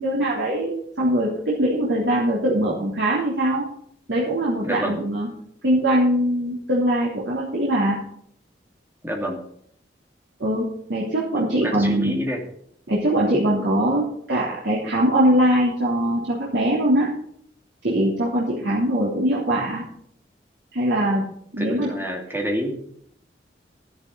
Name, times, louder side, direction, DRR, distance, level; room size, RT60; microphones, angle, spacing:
voice 1, 0.0-3.7 4.1-5.3 5.6-8.0 10.4-12.1 12.9-17.1 17.8-19.8 20.7-21.2 21.5-21.9, right 1 dB, 90° right, -5 dB, 3.4 m, -22 dB
voice 2, 4.6-5.0 9.0-9.4 11.5-12.4 21.6-22.8, equal, 10° right, 1 dB, 2.7 m, -27 dB
13.0 x 11.0 x 4.1 m, 0.67 s
head